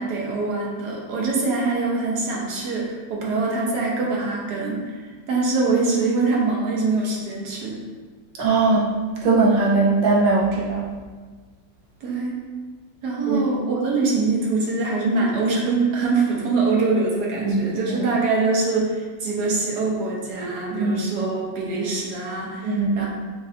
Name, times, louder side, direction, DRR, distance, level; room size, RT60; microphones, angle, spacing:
voice 1, 0.0-5.0 5.3-7.8 12.0-12.4 13.0-23.1, right 3 dB, 65° right, -3 dB, 1.4 m, -24 dB
voice 2, 8.4-8.9 9.2-10.8 13.3-13.4 17.4-17.6 20.8-20.9 22.6-23.0, right 3 dB, 80° right, -5 dB, 1.6 m, -19 dB
6.5 x 2.4 x 2.7 m, 1.4 s
omnidirectional pair, 2.0 m